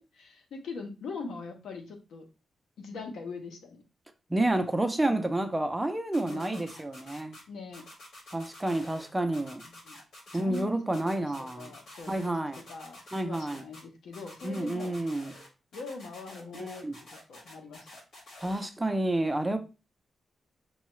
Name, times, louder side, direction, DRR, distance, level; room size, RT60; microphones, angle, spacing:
voice 1, 0.1-2.3 2.8-3.8 5.1-5.3 6.3-6.7 7.5-7.8 9.8-10.0 10.3-13.0 13.3-15.0 15.7-17.9, left 4 dB, 90° left, 0.8 m, -42 dB
voice 2, 4.3-7.4 8.3-9.6 10.3-11.7 12.1-12.6 13.1-13.6 14.4-15.3 16.5-17.0 18.4-19.6, right 1 dB, 10° right, 0.5 m, -29 dB
sound 1, 6.1-7.4 7.7-9.1 9.3-10.6 10.9-12.3 12.5-13.8 14.1-15.5 15.7-18.7, left 1 dB, 70° left, 2.0 m, -49 dB
5.4 x 2.3 x 3.0 m
cardioid pair, 115°, 0 cm